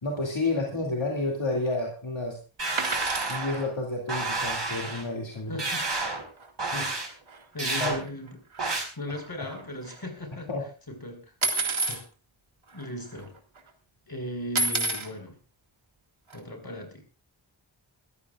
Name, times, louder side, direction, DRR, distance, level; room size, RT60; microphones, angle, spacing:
voice 1, 0.0-2.4 3.3-5.6 7.8-7.9 10.5-10.6, left 2 dB, 70° left, -1 dB, 2.6 m, -30 dB
sound 1, 2.6-3.7 4.1-5.0 5.6-6.2 6.6-7.1 7.6-8.0 8.6-8.8, right 3 dB, 60° right, 4.6 m, -30 dB
sound 2, 2.8-3.4 5.6-5.7 5.9-6.1 6.4-6.5 7.3-7.4 7.9-10.0 11.4-12.0 12.8-12.9 13.1-13.6 14.6-15.1 16.3-16.4, right 2 dB, 80° right, 2.0 m, -30 dB
voice 2, 5.5-5.9 6.6-7.2 7.5-8.4 8.6-10.5 10.9-11.3 11.7-12.1 12.7-13.3 14.1-15.4 16.3-17.0, left 1 dB, 50° left, 5 dB, 5.1 m, -37 dB
22.5 x 14.5 x 2.4 m, 0.33 s
wide cardioid pair, 50°, 47 cm